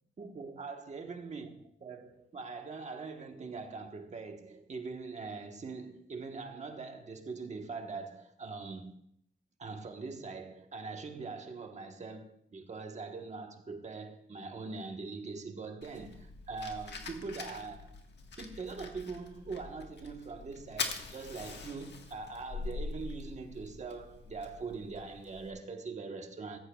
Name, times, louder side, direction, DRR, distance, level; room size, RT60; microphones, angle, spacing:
voice 1, 0.2-8.9 9.6-18.0 18.4-26.6, right 4 dB, 35° right, 1.2 m, -42 dB
Fire, 15.8-25.5, left 4 dB, 55° left, 1.5 m, -44 dB
15.0 x 14.0 x 2.4 m
wide cardioid pair, 160°, 21 cm